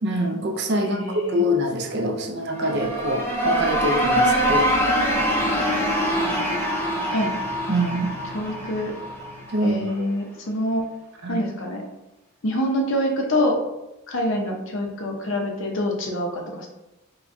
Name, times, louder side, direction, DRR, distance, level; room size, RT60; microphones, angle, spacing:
voice 1, 0.0-4.7 7.7-8.2 9.5-10.1 11.2-11.4, equal, 50° right, 3 dB, 0.5 m, -25 dB
voice 2, 0.8-1.4 7.1-7.3 8.3-8.9 9.6-10.8 11.3-11.8 12.4-13.6 14.1-16.7, left 1 dB, 60° left, 2 dB, 0.7 m, -25 dB
sound 1, 2.5-9.3, equal, 10° left, 0.5 m, -24 dB
sound 2, 5.9-9.8, left 1 dB, 25° right, 0.8 m, -35 dB
4.8 x 2.2 x 2.6 m, 0.96 s
head